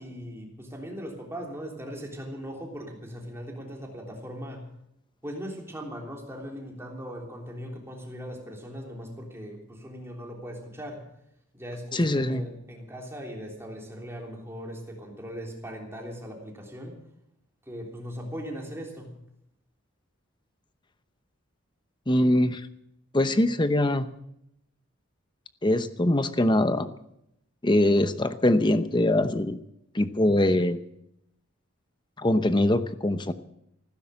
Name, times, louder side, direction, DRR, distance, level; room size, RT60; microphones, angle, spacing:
voice 1, 0.0-4.7 5.2-11.1 11.5-17.0 17.6-19.2, equal, 10° right, 0 dB, 3.4 m, -39 dB
voice 2, 11.9-12.4 22.1-22.6 23.1-24.1 25.6-26.9 27.6-29.6 29.9-30.8 32.2-33.3, left 1 dB, 20° left, 11 dB, 0.8 m, -23 dB
15.5 x 13.0 x 6.4 m, 0.78 s
head